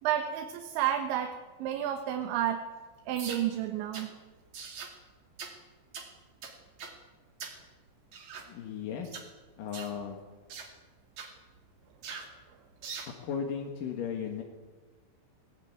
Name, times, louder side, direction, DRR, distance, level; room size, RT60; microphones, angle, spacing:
voice 1, 0.0-2.6 3.1-4.1, right 11 dB, 90° right, 6 dB, 3.6 m, -31 dB
sound 1, 3.2-3.5 3.9-4.1 4.5-5.0 5.4-5.6 5.9-6.1 6.4-7.0 7.4-7.6 8.1-8.5 9.0-9.3 9.7-10.0 10.5-10.7 11.2-11.3 12.0-12.3 12.8-13.1, right 5 dB, 45° right, 3.3 m, -42 dB
voice 2, 8.5-9.1 9.6-10.2 13.1-14.4, left 7 dB, 60° left, 2 dB, 2.9 m, -36 dB
20.0 x 19.0 x 9.4 m, 1.4 s
omnidirectional pair, 5.1 m